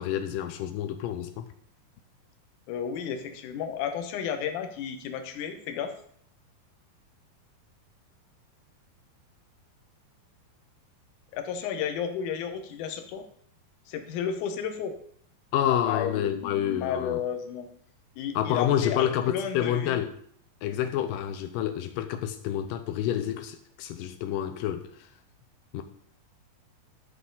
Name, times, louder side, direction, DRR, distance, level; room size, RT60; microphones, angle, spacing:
voice 1, 0.0-1.5 15.5-17.2 18.4-20.1 20.6-24.9 25.7-25.8, left 10 dB, 90° left, 2.0 m, -28 dB
voice 2, 2.7-5.9 11.3-13.3 13.9-14.9 15.9-17.7 18.2-20.0, left 8 dB, 70° left, 2.0 m, -32 dB
13.0 x 5.6 x 3.9 m
omnidirectional pair, 4.6 m